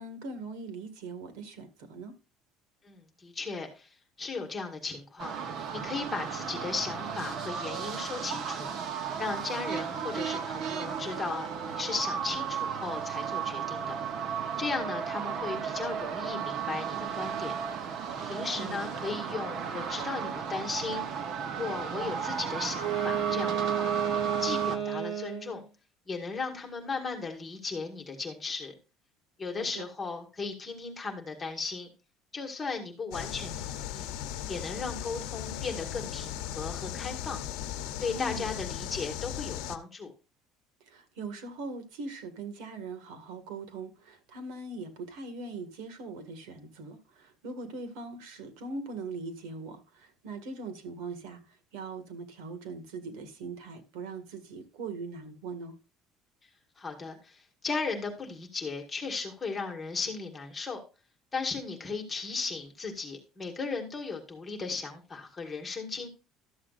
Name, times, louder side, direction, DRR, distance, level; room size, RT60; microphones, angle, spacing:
voice 1, 0.0-2.2 18.5-18.8 29.6-29.9 38.2-38.5 40.8-55.8, right 3 dB, 90° right, 1.8 m, -41 dB
voice 2, 2.8-5.3 5.7-8.7 9.2-14.0 14.6-17.6 18.2-21.1 21.6-23.9 24.4-25.6 26.1-28.7 29.4-31.9 32.3-34.1 34.5-37.4 38.0-40.1 56.8-60.8 61.3-66.1, left 4 dB, 10° left, 1.7 m, -36 dB
sound 1, 5.2-24.8, right 7 dB, 40° right, 0.9 m, -34 dB
Wind instrument woodwind instrument, 22.7-25.6, right 9 dB, 60° right, 2.0 m, -31 dB
sound 2, 33.1-39.8, left 10 dB, 85° left, 0.8 m, -37 dB
12.5 x 7.4 x 2.5 m
cardioid pair, 175°, 0 cm